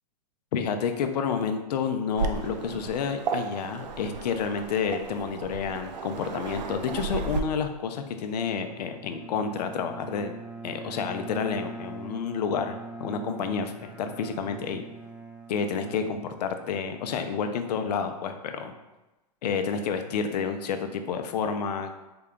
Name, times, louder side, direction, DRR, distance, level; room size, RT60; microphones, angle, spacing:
voice 1, 0.5-10.4 10.6-14.8 15.5-18.7 19.4-21.9, left 6 dB, 80° left, 7 dB, 0.5 m, -30 dB
Waves surf, 2.2-7.4, right 5 dB, 90° right, 0.4 m, -34 dB
Bowed string instrument, 8.4-16.9, right 3 dB, 5° right, 0.4 m, -42 dB
3.8 x 2.2 x 3.6 m, 1.0 s
hypercardioid pair, 120°, 21 cm